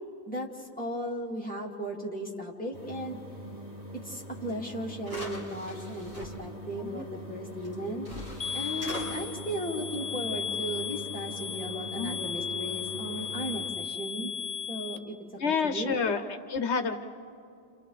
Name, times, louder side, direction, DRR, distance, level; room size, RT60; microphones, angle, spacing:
voice 1, 0.3-3.2 3.9-8.1 8.5-14.3 14.7-15.2 15.4-16.0, equal, 5° left, -4 dB, 2.7 m, -36 dB
sound 1, 2.7-13.7, equal, 35° right, 2.7 m, -43 dB
sound 2, 4.5-4.6 5.0-6.3 7.6-7.7 8.0-9.1, left 1 dB, 60° right, 6.9 m, -41 dB
sound 3, 8.4-15.0, left 7 dB, 40° left, 0.7 m, -36 dB
voice 2, 15.4-16.9, left 5 dB, 80° left, 8 dB, 1.3 m, -29 dB
29.5 x 29.5 x 4.2 m, 2.5 s
omnidirectional pair, 1.1 m